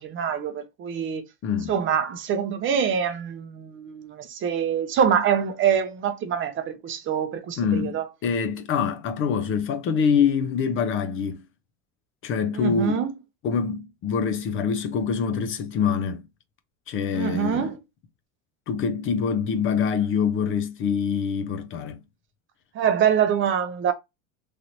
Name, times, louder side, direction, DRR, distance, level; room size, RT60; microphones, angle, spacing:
voice 1, 0.0-1.2 1.7-8.0 12.5-13.1 17.1-17.8 22.7-23.9, right 8 dB, 35° right, 0.5 m, -25 dB
voice 2, 1.4-1.8 7.6-11.4 12.2-13.0 13.4-16.3 16.9-17.7 18.7-22.0, left 6 dB, 35° left, 0.4 m, -25 dB
3.1 x 2.8 x 2.5 m
supercardioid pair, 125°, 37 cm